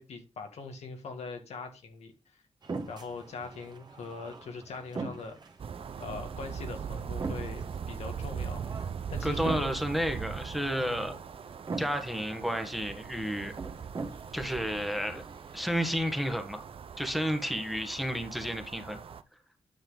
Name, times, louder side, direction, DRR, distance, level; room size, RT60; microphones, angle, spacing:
voice 1, 0.0-2.1 2.9-5.4 6.0-8.7 9.1-9.7 10.8-11.1, left 4 dB, 85° left, 1.7 m, -41 dB
sound 1, 2.6-15.7, right 3 dB, 40° right, 1.5 m, -43 dB
sound 2, 5.6-19.2, right 7 dB, 60° right, 0.6 m, -40 dB
voice 2, 9.2-11.1 11.8-13.5 14.3-15.2 15.5-16.6 17.0-19.0, equal, ahead, 1.4 m, -31 dB
9.5 x 5.7 x 3.9 m
cardioid pair, 85°, 11 cm